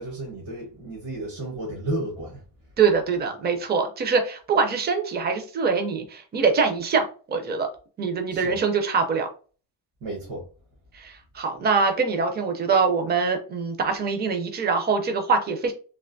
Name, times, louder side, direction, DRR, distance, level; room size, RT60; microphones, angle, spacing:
voice 1, 0.0-2.4 8.3-8.6 10.0-10.4, right 1 dB, 80° right, 1.3 m, -32 dB
voice 2, 2.8-7.7 8.0-9.3 10.9-15.7, right 5 dB, 25° right, 0.4 m, -24 dB
3.4 x 2.5 x 2.5 m
cardioid pair, 165°, 45 cm